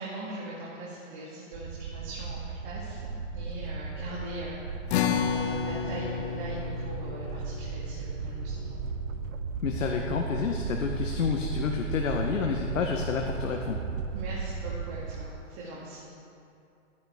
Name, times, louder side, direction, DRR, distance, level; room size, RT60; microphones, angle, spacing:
voice 1, 0.0-4.6 5.3-8.8 14.1-16.2, right 1 dB, 40° right, -7 dB, 2.6 m, -41 dB
sound 1, 1.5-15.3, right 5 dB, 85° right, 0.9 m, -35 dB
sound 2, 4.9-11.5, left 8 dB, 55° left, 0.9 m, -34 dB
voice 2, 9.6-13.8, left 6 dB, 80° left, 2 dB, 1.2 m, -29 dB
15.5 x 9.8 x 3.6 m, 2.5 s
hypercardioid pair, 135°, 38 cm